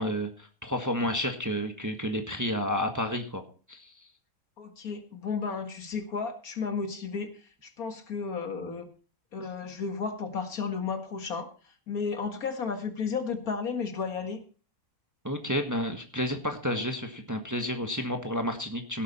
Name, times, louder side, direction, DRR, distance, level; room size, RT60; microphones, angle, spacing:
voice 1, 0.0-3.4 3.7-3.9 15.2-19.0, equal, 10° right, 5 dB, 1.3 m, -31 dB
voice 2, 4.6-8.9 9.3-11.5 11.9-14.4, left 5 dB, 65° left, 6 dB, 2.1 m, -33 dB
17.0 x 8.3 x 4.3 m, 0.38 s
omnidirectional pair, 1.6 m